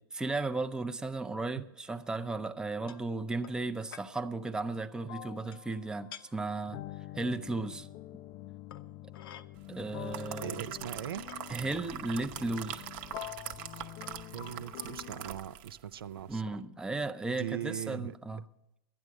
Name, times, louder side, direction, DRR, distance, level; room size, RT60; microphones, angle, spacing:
voice 1, 0.0-6.8 7.2-7.9 9.7-10.5 11.5-12.8 16.3-18.4, right 3 dB, 5° right, 0.5 m, -35 dB
sound 1, 2.9-3.1 3.4-3.6 3.9-4.1 5.5-5.8 6.1-6.2 7.5-7.6 8.7-9.5 10.3-10.4 10.7-11.4 12.2-12.3 13.5-13.7 14.0-14.2, left 9 dB, 75° left, 0.8 m, -50 dB
sound 2, 4.2-4.4 5.1-15.4, left 15 dB, 45° left, 0.4 m, -46 dB
sound 3, 9.8-15.8 16.2-16.3, right 11 dB, 45° right, 0.9 m, -43 dB
voice 2, 10.4-11.3 14.3-16.6 17.3-18.4, right 11 dB, 85° right, 0.5 m, -40 dB
12.5 x 9.6 x 6.3 m
hypercardioid pair, 115°, 12 cm